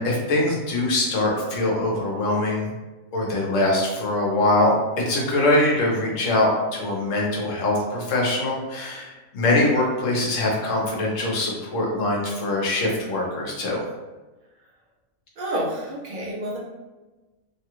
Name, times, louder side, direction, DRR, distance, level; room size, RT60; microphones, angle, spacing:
voice 1, 0.0-2.7 3.1-4.8 5.1-13.8, left 2 dB, 65° left, -2 dB, 1.2 m, -23 dB
voice 2, 15.4-16.6, right 1 dB, 50° right, -5 dB, 0.7 m, -29 dB
3.1 x 2.3 x 2.9 m, 1.1 s
omnidirectional pair, 1.4 m